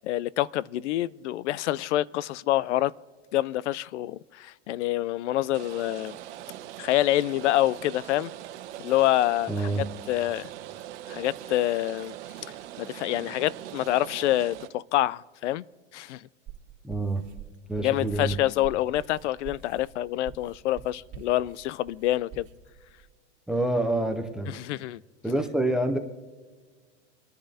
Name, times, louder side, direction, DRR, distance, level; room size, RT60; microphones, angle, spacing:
voice 1, 0.0-2.9 3.3-6.2 6.8-8.3 8.8-10.5 11.1-12.2 12.8-15.6 15.9-16.3 17.8-22.5 24.5-25.0, left 14 dB, 70° left, 0.5 m, -27 dB
Rain, 5.5-14.7, right 13 dB, 70° right, 1.2 m, -42 dB
voice 2, 9.5-9.8 16.8-17.2 17.7-18.4 23.5-24.5 25.2-26.0, right 2 dB, ahead, 0.3 m, -27 dB
sound 1, 16.5-23.1, right 8 dB, 20° right, 2.7 m, -46 dB
28.5 x 10.0 x 2.7 m
supercardioid pair, 140°, 37 cm